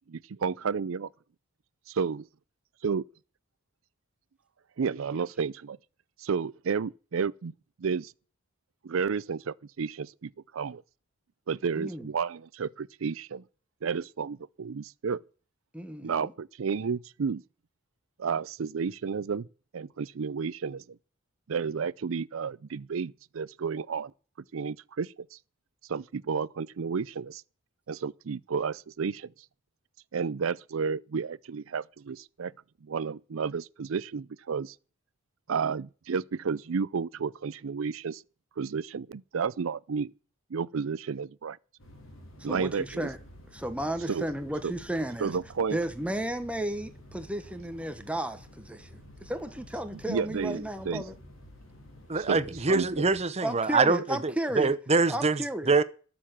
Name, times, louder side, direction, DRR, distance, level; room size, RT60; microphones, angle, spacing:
voice 1, 0.1-1.1 1.9-2.3 2.8-3.0 4.8-5.8 6.2-7.5 7.8-8.1 8.8-10.8 11.5-13.4 13.8-15.2 16.0-17.4 18.2-19.5 19.7-21.0 21.5-24.1 24.5-25.4 25.9-27.4 27.9-29.3 30.1-32.5 32.8-34.8 35.5-38.2 38.6-40.1 40.5-41.6 42.4-43.1 44.1-44.2 44.6-44.7 45.2-45.8 50.1-51.0 52.2-52.4 52.7-53.0, right 5 dB, 75° right, 0.5 m, -31 dB
voice 2, 11.7-12.1 15.7-16.3 42.5-43.2 43.5-45.3 45.7-51.1 53.4-54.7 55.1-55.7, right 1 dB, 5° right, 1.1 m, -33 dB
sound 1, 41.8-53.2, left 1 dB, 85° left, 3.4 m, -51 dB
voice 3, 52.1-55.4 55.7-55.8, right 4 dB, 30° right, 0.9 m, -24 dB
13.0 x 7.0 x 7.4 m
head